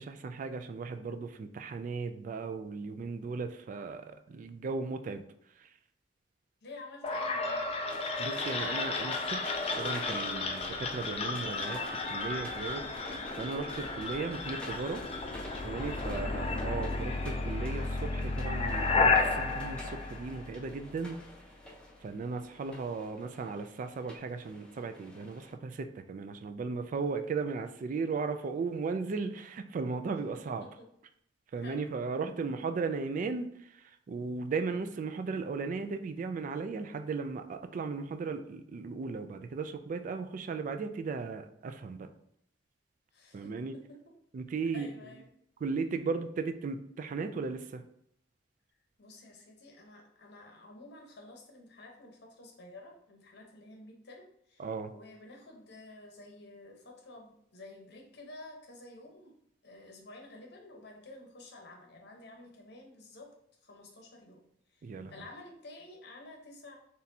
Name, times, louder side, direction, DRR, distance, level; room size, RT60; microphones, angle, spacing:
voice 1, 0.0-5.2 8.2-12.8 13.4-15.0 15.6-21.2 22.0-30.7 31.5-33.5 34.1-42.1 43.3-43.8 44.3-44.9 45.6-47.8 54.6-54.9 64.8-65.1, right 4 dB, 45° right, 8 dB, 0.3 m, -36 dB
voice 2, 6.6-7.6 16.1-16.3 30.6-30.9 31.5-31.9 43.1-43.8 44.7-45.2 49.0-59.3 59.6-63.3 63.6-64.4 64.7-66.8, left 2 dB, 65° left, 1 dB, 0.9 m, -51 dB
sound 1, 7.0-20.9, left 3 dB, 35° left, 0.4 m, -32 dB
sound 2, 7.9-25.5, left 1 dB, 5° left, 0.8 m, -49 dB
4.1 x 3.4 x 2.7 m, 0.72 s
head